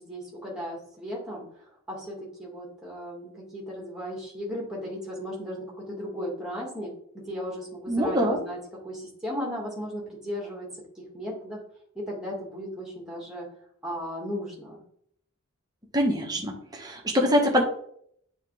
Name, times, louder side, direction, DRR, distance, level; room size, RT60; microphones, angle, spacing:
voice 1, 0.0-1.5 1.9-8.6 8.8-10.7 11.0-11.6 11.9-13.5 13.8-14.8, equal, 5° right, -3 dB, 2.1 m, -36 dB
voice 2, 7.9-8.4 15.9-17.6, equal, 20° right, 0 dB, 1.2 m, -24 dB
8.3 x 3.6 x 3.5 m, 0.67 s
head